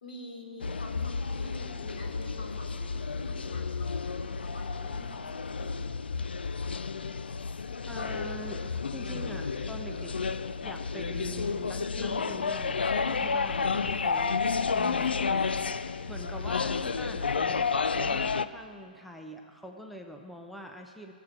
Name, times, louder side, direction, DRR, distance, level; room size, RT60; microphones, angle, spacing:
voice 1, 0.0-5.9 13.4-13.9, left 1 dB, 70° left, 0 dB, 3.7 m, -46 dB
sound 1, 0.6-18.4, left 5 dB, 85° left, 0.5 m, -31 dB
voice 2, 7.8-10.2 10.6-21.1, equal, ahead, 2 dB, 0.7 m, -44 dB
17.0 x 7.7 x 9.1 m, 2.1 s
hypercardioid pair, 135°, 5 cm